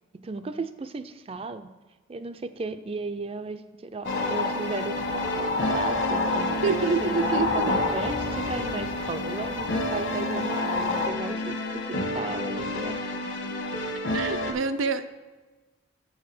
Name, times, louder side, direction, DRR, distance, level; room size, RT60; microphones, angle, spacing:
voice 1, 0.2-1.7 2.1-13.1 14.5-14.9, right 3 dB, 30° right, 11 dB, 0.4 m, -35 dB
sound 1, 4.0-11.1, left 3 dB, 85° left, 1.3 m, -30 dB
sound 2, 4.0-14.5, left 1 dB, 60° left, 1.2 m, -31 dB
Speech / Wind, 4.9-9.8, left 1 dB, 40° left, 0.6 m, -44 dB
voice 2, 6.6-7.7 14.1-15.1, right 4 dB, 80° right, 10 dB, 0.6 m, -26 dB
7.4 x 4.7 x 6.0 m, 1.2 s
head